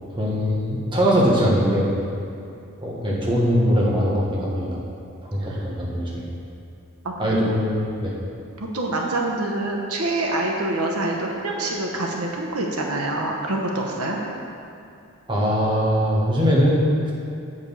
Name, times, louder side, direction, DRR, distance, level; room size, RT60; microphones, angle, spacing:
voice 1, 0.2-1.9 2.8-4.8 5.2-6.3 7.2-8.1 15.3-17.1, equal, 25° right, -5 dB, 1.3 m, -21 dB
voice 2, 7.0-7.3 8.6-14.2, right 2 dB, 90° right, -1 dB, 1.0 m, -26 dB
7.6 x 5.2 x 5.5 m, 2.6 s
head